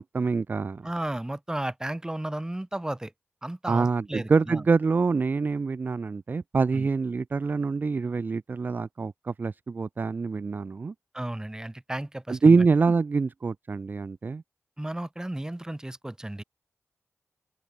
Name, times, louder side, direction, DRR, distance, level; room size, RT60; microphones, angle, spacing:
voice 1, 0.0-0.9 3.7-10.9 12.3-14.4, right 4 dB, 40° right, 0.4 m, -25 dB
voice 2, 0.8-3.1 3.4-4.6 6.7-6.9 11.1-12.6 14.8-16.4, right 1 dB, 15° right, 4.3 m, -34 dB
open air
wide cardioid pair, 110°, 5 cm